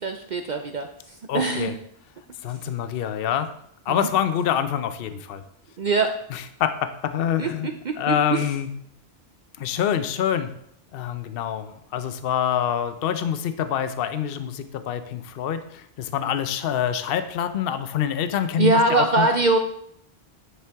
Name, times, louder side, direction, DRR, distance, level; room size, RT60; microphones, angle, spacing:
voice 1, 0.0-1.7 3.9-4.1 5.8-6.2 7.4-8.5 18.6-19.6, right 3 dB, 50° right, 5 dB, 0.7 m, -23 dB
voice 2, 1.3-1.7 2.4-3.5 3.9-5.4 6.3-7.7 8.0-8.7 9.6-10.5 10.9-19.3, left 9 dB, 65° left, 10 dB, 0.8 m, -26 dB
10.0 x 7.5 x 3.5 m, 0.70 s
omnidirectional pair, 1.1 m